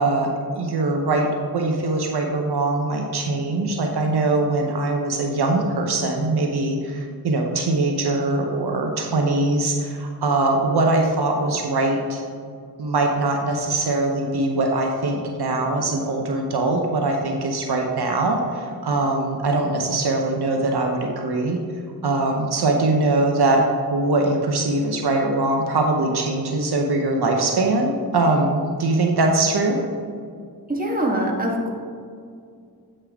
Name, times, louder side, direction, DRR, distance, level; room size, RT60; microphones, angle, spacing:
voice 1, 0.0-12.2 12.8-21.6 22.0-23.6 23.9-29.8, right 2 dB, 70° right, 2 dB, 0.9 m, -22 dB
voice 2, 30.7-31.7, right 1 dB, 20° right, -1 dB, 1.5 m, -23 dB
8.5 x 5.4 x 3.5 m, 2.2 s
cardioid pair, 60°, 40 cm